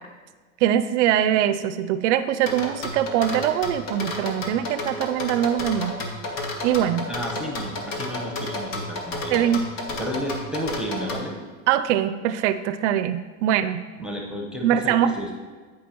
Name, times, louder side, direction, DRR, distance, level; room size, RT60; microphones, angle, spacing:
voice 1, 0.6-5.9 6.6-7.1 9.3-9.6 11.7-13.8 14.6-15.1, right 11 dB, 55° right, 12 dB, 0.5 m, -22 dB
sound 1, 2.5-11.2, left 2 dB, 65° left, 1.6 m, -31 dB
voice 2, 7.1-9.4 9.8-11.4 14.0-15.3, equal, ahead, 0 dB, 1.0 m, -32 dB
15.0 x 5.0 x 3.0 m, 1.4 s
hypercardioid pair, 105°, 42 cm